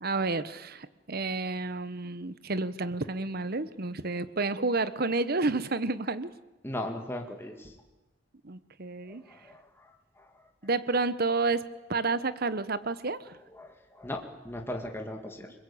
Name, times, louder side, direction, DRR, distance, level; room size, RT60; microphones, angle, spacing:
voice 1, 0.0-6.3 8.4-9.2 10.6-11.6 11.9-13.4, right 3 dB, 55° right, 14 dB, 1.2 m, -30 dB
voice 2, 6.6-7.7 9.4-9.6 13.6-15.6, left 1 dB, 15° left, 3 dB, 2.2 m, -37 dB
29.0 x 21.0 x 8.7 m, 1.1 s
head